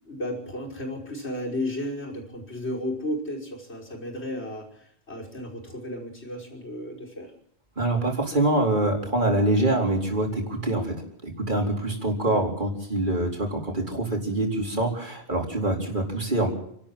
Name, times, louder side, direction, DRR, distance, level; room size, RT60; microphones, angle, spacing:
voice 1, 0.0-7.3 12.3-12.4, left 1 dB, 75° left, -2 dB, 5.8 m, -34 dB
voice 2, 7.8-16.5, right 1 dB, 45° right, 1 dB, 4.4 m, -25 dB
30.0 x 12.5 x 7.7 m, 0.69 s
omnidirectional pair, 1.1 m